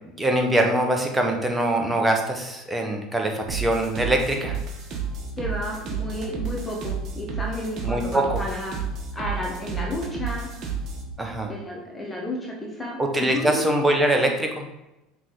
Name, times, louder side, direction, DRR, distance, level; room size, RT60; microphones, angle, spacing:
voice 1, 0.2-4.6 7.8-8.4 11.2-11.5 13.0-14.7, right 1 dB, 10° right, 2 dB, 1.3 m, -23 dB
sound 1, 3.5-11.1, right 5 dB, 50° right, 1.6 m, -31 dB
voice 2, 5.4-8.8 9.1-10.5 11.5-13.6, equal, 15° left, -2 dB, 1.6 m, -32 dB
6.0 x 3.9 x 4.9 m, 0.94 s
supercardioid pair, 95°, 0 cm